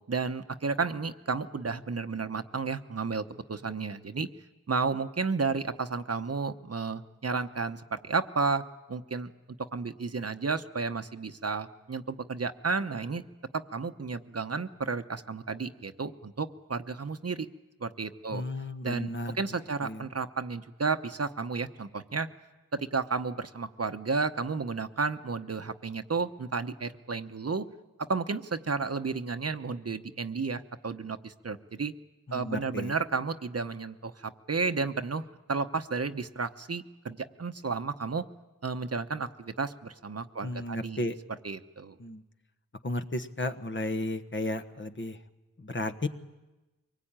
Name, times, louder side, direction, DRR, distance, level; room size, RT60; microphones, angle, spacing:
voice 1, 0.1-3.2 3.5-4.3 4.7-9.3 9.7-13.2 13.5-17.5 17.8-18.4 18.8-19.1 19.4-22.3 22.7-27.7 28.1-31.9 32.3-38.2 38.6-41.0 41.4-41.9, right 4 dB, 45° right, 9 dB, 1.0 m, -32 dB
voice 2, 18.3-19.4 19.8-20.1 32.3-32.9 40.4-41.2 42.0-42.2 42.8-45.2 45.6-46.1, left 2 dB, 35° left, 8 dB, 1.2 m, -33 dB
24.0 x 19.5 x 8.9 m, 1.1 s
wide cardioid pair, 65°, 33 cm